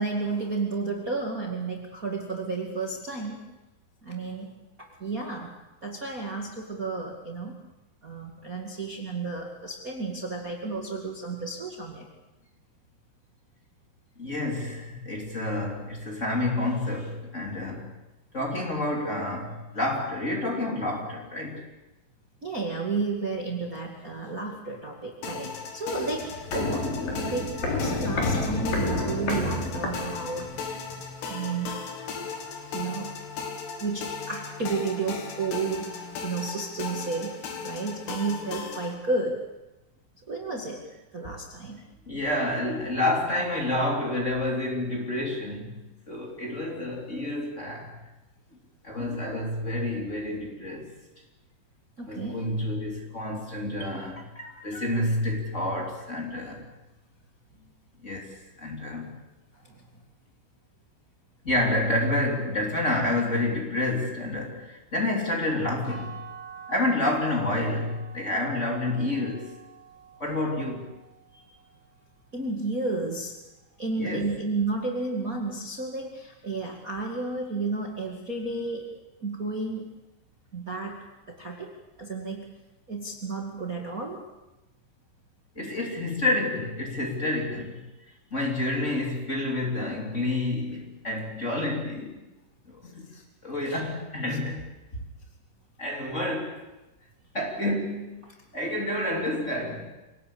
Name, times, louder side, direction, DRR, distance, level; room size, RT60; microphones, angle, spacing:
voice 1, 0.0-3.4 4.0-4.5 5.0-5.5 5.8-7.6 8.0-12.1 22.4-30.5 31.3-31.8 32.7-33.2 33.8-37.4 37.6-39.4 40.3-40.8 41.1-41.8 49.0-49.2 52.0-52.4 54.4-54.7 59.6-59.8 71.3-71.5 72.3-73.4 73.8-78.9 79.2-79.8 80.5-81.0 81.3-81.7 82.0-82.5 82.9-84.2 85.5-85.6 92.8-93.2 93.6-93.8 94.3-94.4, right 3 dB, 50° right, 1.0 m, -32 dB
voice 2, 14.2-17.9 18.3-21.6 42.1-47.9 48.8-50.9 52.0-56.6 58.0-59.1 61.4-66.2 66.7-69.5 70.2-70.9 74.0-74.3 85.5-87.9 88.3-92.2 92.7-93.1 93.4-94.6 94.9-95.0 95.8-96.6 97.3-98.1 98.5-99.9, left 1 dB, 20° left, 2.7 m, -29 dB
sound 1, 25.2-38.9, left 5 dB, 65° left, 4.4 m, -37 dB
Walk footsteps, 25.9-30.6 30.9-31.0, left 2 dB, 45° left, 5.2 m, -30 dB
sound 2, 65.8-71.7, right 6 dB, 80° left, 9.8 m, -47 dB
26.5 x 18.0 x 8.6 m
omnidirectional pair, 5.6 m